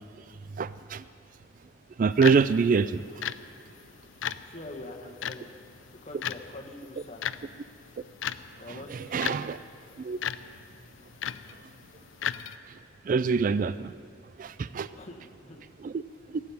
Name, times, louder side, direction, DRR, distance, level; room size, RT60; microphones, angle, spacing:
voice 1, 0.6-1.0 2.0-3.0 8.7-9.6 10.0-10.2 13.1-13.9 14.4-14.9 15.8-16.0, right 5 dB, 45° right, 15 dB, 0.3 m, -25 dB
sound 1, 2.1-12.6, left 9 dB, 85° left, 0.5 m, -38 dB
voice 2, 4.5-5.5 6.0-7.2 8.6-9.4 14.9-15.6, left 2 dB, 35° left, 2 dB, 1.5 m, -44 dB
17.0 x 7.4 x 8.5 m, 2.7 s
head